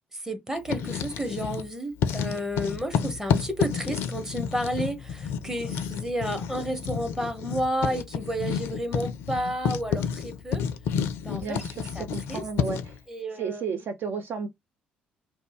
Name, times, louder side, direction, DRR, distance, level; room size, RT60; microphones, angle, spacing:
voice 1, 0.1-10.6 11.2-11.6 11.9-12.4 13.1-13.8, equal, 10° right, 0.9 m, -31 dB
Writing, 0.6-1.7 2.0-13.0, left 7 dB, 60° left, 0.4 m, -30 dB
voice 2, 11.2-13.0 13.4-14.5, right 5 dB, 50° right, 0.4 m, -33 dB
2.5 x 2.1 x 3.2 m
figure-of-eight pair, 45°, 5 cm